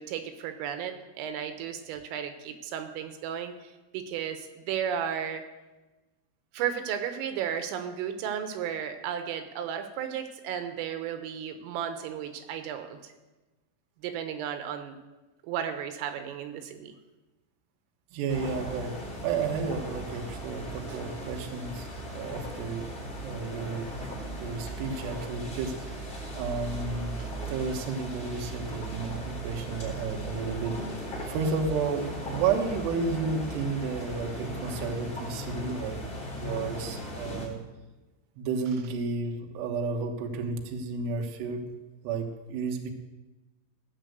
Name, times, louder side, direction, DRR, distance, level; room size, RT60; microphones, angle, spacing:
voice 1, 0.0-3.5 3.9-5.4 6.5-13.1 14.0-15.0 15.4-16.9, right 8 dB, 85° right, 7 dB, 3.6 m, -34 dB
voice 2, 18.1-18.9 19.2-21.9 22.1-22.9 23.2-26.1 26.3-27.2 27.5-31.0 31.3-36.0 36.3-37.6 38.4-41.7 42.0-42.9, right 4 dB, 70° right, 3 dB, 3.0 m, -32 dB
sound 1, 18.3-37.5, right 1 dB, 10° left, 3.7 m, -38 dB
17.0 x 6.0 x 7.9 m, 1.1 s
omnidirectional pair, 5.8 m